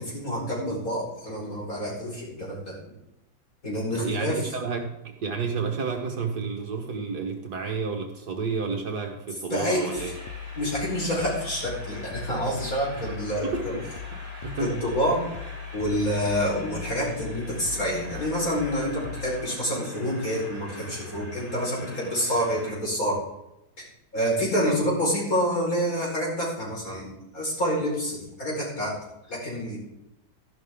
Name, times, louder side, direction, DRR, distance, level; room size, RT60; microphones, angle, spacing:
voice 1, 0.0-2.7 3.6-4.5 9.5-10.0 10.6-13.8 14.6-15.2 15.7-23.2 24.1-28.9 29.3-29.8, equal, 45° left, -4 dB, 5.3 m, -27 dB
voice 2, 3.9-10.1 13.0-13.1 13.4-13.8 14.4-14.7, right 5 dB, 60° right, 3 dB, 1.8 m, -31 dB
Train, 9.7-22.7, equal, 10° left, 5.0 m, -44 dB
sound 1, 10.0-19.5, left 9 dB, 70° left, 0.6 m, -39 dB
13.0 x 11.5 x 3.7 m, 0.88 s
omnidirectional pair, 2.0 m